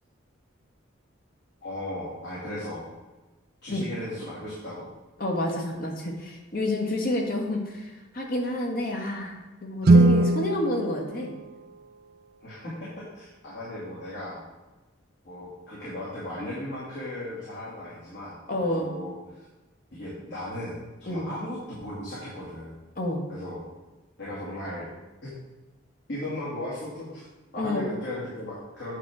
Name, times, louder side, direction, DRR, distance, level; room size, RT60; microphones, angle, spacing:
voice 1, 1.6-2.9 3.6-4.9 12.4-14.4 15.2-18.4 18.7-19.5 19.9-22.8 23.3-23.6 24.2-24.9 25.2-25.4 26.1-27.3 27.5-29.0, left 1 dB, 60° left, -9 dB, 2.4 m, -36 dB
voice 2, 5.2-11.3 18.5-18.9 21.1-21.3 23.0-23.2 27.6-27.9, left 1 dB, 45° left, 0 dB, 1.4 m, -29 dB
Guitar, 9.8-12.4, right 2 dB, 50° right, 0.4 m, -22 dB
9.1 x 3.6 x 6.2 m, 1.1 s
head